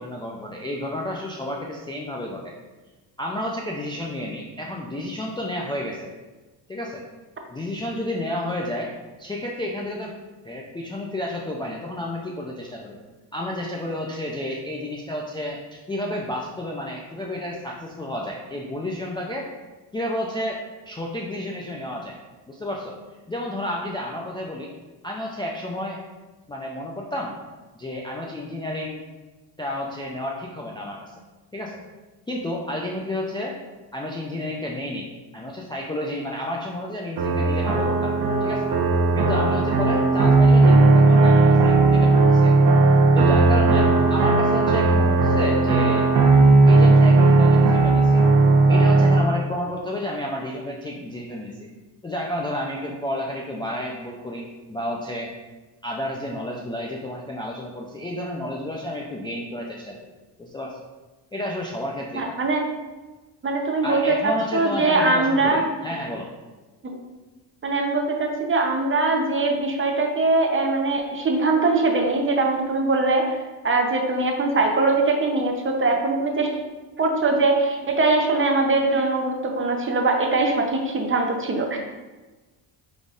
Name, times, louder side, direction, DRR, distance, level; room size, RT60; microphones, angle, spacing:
voice 1, 0.0-2.5 3.2-6.1 6.7-7.0 7.5-8.9 9.2-10.1 10.4-13.0 13.3-19.5 19.9-22.2 22.5-23.0 23.3-24.7 25.0-26.0 26.5-27.4 27.7-29.0 29.6-31.2 31.5-31.8 32.3-33.6 33.9-35.1 35.3-38.1 38.4-38.7 39.1-42.7 43.1-46.1 46.7-48.3 48.7-51.7 52.0-55.3 55.8-60.1 60.4-60.8 61.3-62.4 63.8-66.3, left 1 dB, 10° left, -2 dB, 0.4 m, -31 dB
sound 1, 37.2-49.2, right 3 dB, 65° right, 0.9 m, -16 dB
voice 2, 62.1-62.6 63.4-65.6 66.8-67.0 67.6-76.5 77.0-81.8, right 3 dB, 25° right, 2 dB, 0.7 m, -22 dB
5.1 x 3.9 x 2.4 m, 1.2 s
cardioid pair, 90°, 46 cm